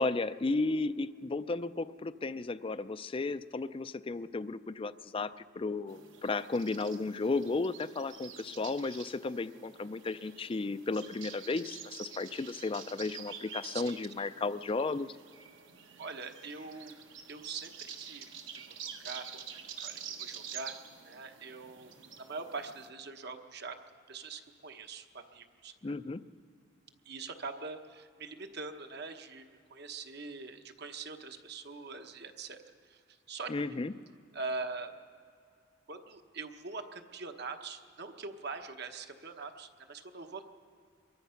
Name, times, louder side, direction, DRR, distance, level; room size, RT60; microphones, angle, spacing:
voice 1, 0.0-15.1 25.8-26.2 33.5-33.9, left 3 dB, 25° left, 14 dB, 0.4 m, -34 dB
sound 1, 5.9-22.9, right 7 dB, 70° right, 1.5 m, -48 dB
voice 2, 13.7-14.3 16.0-17.0 17.3-18.3 18.5-19.4 19.8-20.8 21.0-23.8 24.1-26.0 27.0-32.6 32.9-33.0 33.3-33.5 34.3-34.9 35.9-40.4, right 4 dB, 55° right, 6 dB, 1.1 m, -43 dB
23.5 x 22.5 x 5.8 m, 2.5 s
head